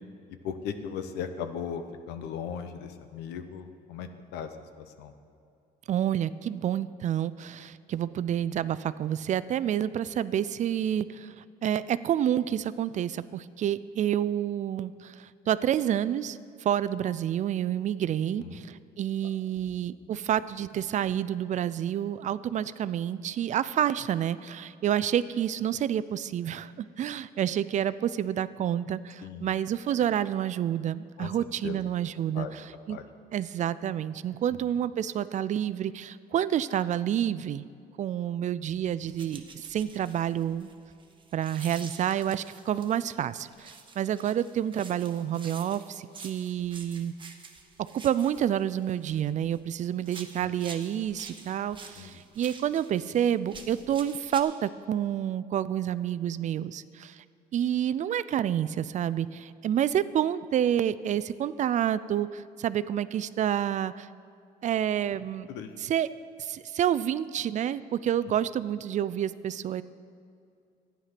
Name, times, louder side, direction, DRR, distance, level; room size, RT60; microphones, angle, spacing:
voice 1, 0.4-4.5 4.8-5.1 18.4-18.6 29.2-29.5 31.2-31.3 31.6-31.8 32.3-32.5 32.9-33.0 50.4-50.5 52.0-52.2 65.5-65.7, left 7 dB, 90° left, 9 dB, 0.9 m, -37 dB
voice 2, 5.9-33.0 33.3-37.7 38.0-40.7 41.3-47.1 47.8-57.2 57.5-64.1 64.6-65.5 65.8-66.1 66.4-69.8, right 10 dB, 45° right, 16 dB, 0.4 m, -29 dB
sound 1, 39.1-43.1 43.5-49.6 50.0-54.4, right 4 dB, 30° right, 1.2 m, -48 dB
12.0 x 9.8 x 5.8 m, 2.4 s
cardioid pair, 110°, 17 cm